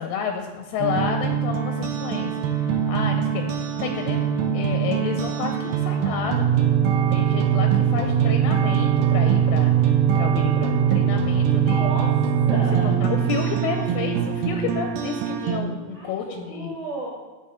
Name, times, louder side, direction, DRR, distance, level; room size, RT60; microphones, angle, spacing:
voice 1, 0.0-2.3 2.6-4.3 4.5-6.7 7.1-11.9 12.5-16.7, left 6 dB, 80° left, 4 dB, 2.2 m, -31 dB
sound 1, 0.8-15.6, right 8 dB, 90° right, 2.5 m, -22 dB
voice 2, 11.7-13.0 15.9-17.1, right 2 dB, 70° right, -6 dB, 1.2 m, -36 dB
9.6 x 4.1 x 3.7 m, 1.3 s
omnidirectional pair, 4.2 m